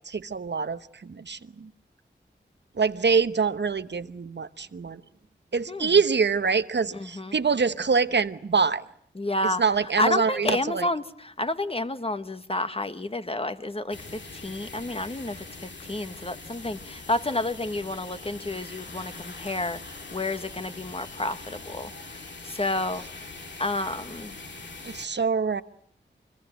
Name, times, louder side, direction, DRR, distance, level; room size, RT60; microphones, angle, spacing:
voice 1, 0.1-1.7 2.8-5.0 5.5-8.8 9.6-10.9 24.8-25.6, right 5 dB, 65° right, 1.1 m, -25 dB
voice 2, 6.9-7.4 9.2-23.1 23.6-24.4, left 2 dB, 30° left, 1.7 m, -30 dB
sound 1, 13.9-25.1, left 3 dB, 70° left, 2.3 m, -42 dB
25.0 x 22.0 x 9.2 m
cardioid pair, 40°, 19 cm